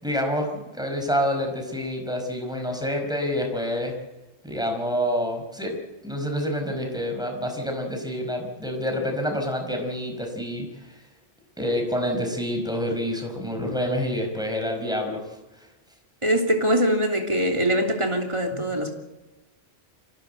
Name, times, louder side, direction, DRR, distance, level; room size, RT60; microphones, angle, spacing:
voice 1, 0.0-4.0 4.4-10.9 11.6-15.2 18.5-18.6, equal, 5° right, 3 dB, 5.1 m, -27 dB
voice 2, 16.2-18.9, equal, 30° right, 1 dB, 3.2 m, -23 dB
25.0 x 16.5 x 7.9 m, 1.1 s
omnidirectional pair, 1.1 m